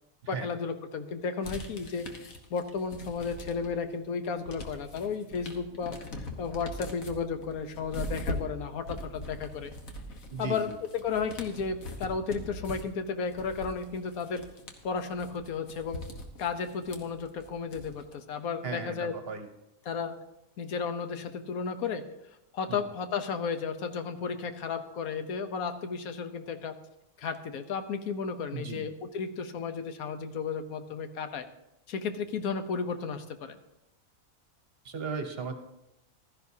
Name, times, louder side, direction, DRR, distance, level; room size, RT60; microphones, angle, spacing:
voice 1, 0.3-9.7 10.4-14.4 14.8-16.0 16.4-19.1 19.9-20.1 20.6-22.0 22.5-26.7 27.2-31.4 31.9-33.6, left 5 dB, 90° left, 8 dB, 1.3 m, -33 dB
sound 1, 1.4-3.9 4.2-18.1, left 1 dB, 75° left, 1.6 m, -41 dB
voice 2, 10.3-10.7 18.6-19.5 22.7-22.8 28.5-28.9 34.8-35.5, right 5 dB, 50° right, 6 dB, 1.0 m, -36 dB
15.5 x 12.5 x 2.8 m, 0.88 s
omnidirectional pair, 1.5 m